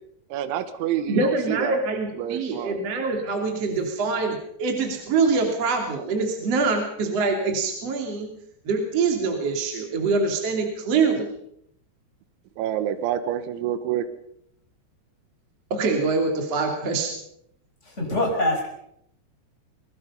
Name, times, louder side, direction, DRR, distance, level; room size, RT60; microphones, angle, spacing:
voice 1, 0.3-1.8 2.1-2.8 12.6-14.1, right 10 dB, 80° right, 10 dB, 3.6 m, -28 dB
voice 2, 1.1-8.3 8.6-11.3 15.7-17.1 18.1-18.2, right 4 dB, 40° right, 3 dB, 3.1 m, -24 dB
voice 3, 18.0-18.7, left 1 dB, 15° left, 0 dB, 5.4 m, -23 dB
23.5 x 22.0 x 5.5 m, 0.73 s
omnidirectional pair, 5.5 m